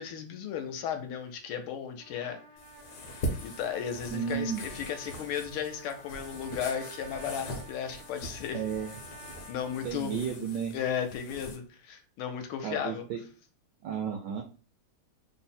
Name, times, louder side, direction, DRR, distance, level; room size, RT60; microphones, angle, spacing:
voice 1, 0.0-2.4 3.4-8.7 9.5-10.5 10.7-13.0, left 8 dB, 80° left, 6 dB, 1.4 m, -35 dB
Trumpet, 1.9-9.9, right 2 dB, 55° right, 0.5 m, -51 dB
sound 1, 2.6-11.6, equal, 60° left, 1.1 m, -41 dB
voice 2, 4.1-4.6 8.5-8.9 9.8-10.7 12.6-13.2 13.8-14.4, right 8 dB, 80° right, 4 dB, 0.9 m, -33 dB
3.5 x 2.0 x 4.2 m, 0.37 s
omnidirectional pair, 2.4 m